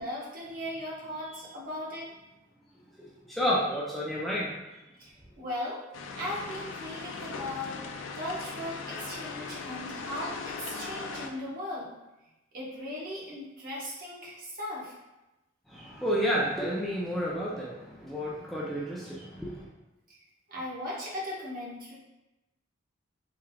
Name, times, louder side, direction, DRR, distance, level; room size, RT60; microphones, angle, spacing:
voice 1, 0.0-2.1 5.0-5.8 6.1-11.9 12.5-14.9 20.1-20.2 20.5-21.9, left 1 dB, 50° right, -6 dB, 1.0 m, -38 dB
voice 2, 3.0-4.5 15.7-19.6, equal, ahead, -7 dB, 0.4 m, -31 dB
sound 1, 5.9-11.3, left 4 dB, 80° left, 0.4 m, -39 dB
3.5 x 3.3 x 2.2 m, 1.0 s
head